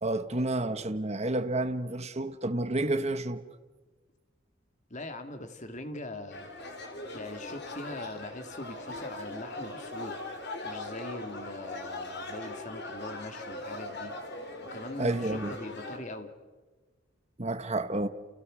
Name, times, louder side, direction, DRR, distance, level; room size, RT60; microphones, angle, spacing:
voice 1, 0.0-3.4 15.0-15.5 17.4-18.1, right 2 dB, 35° right, 1.3 m, -30 dB
voice 2, 4.9-6.5 7.1-10.2 10.6-14.1 14.6-16.3, left 2 dB, 35° left, 2.4 m, -42 dB
sound 1, 6.3-16.0, left 2 dB, 55° left, 4.1 m, -40 dB
30.0 x 30.0 x 6.4 m
head